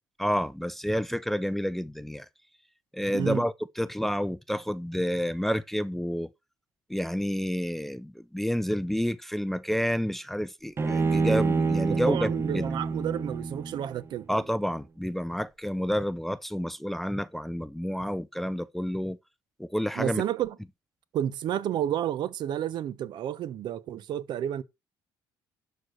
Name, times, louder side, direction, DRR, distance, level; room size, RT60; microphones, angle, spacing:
voice 1, 0.2-2.3 2.9-6.3 6.9-12.7 14.3-19.2 19.6-20.2, equal, 5° left, 0.5 m, -29 dB
Bowed string instrument, 10.8-14.1, right 4 dB, 30° right, 1.0 m, -27 dB
voice 2, 11.8-14.2 20.0-20.6 21.1-24.6, right 10 dB, 60° right, 0.9 m, -31 dB
11.5 x 4.4 x 6.4 m
cardioid pair, 105°, 8 cm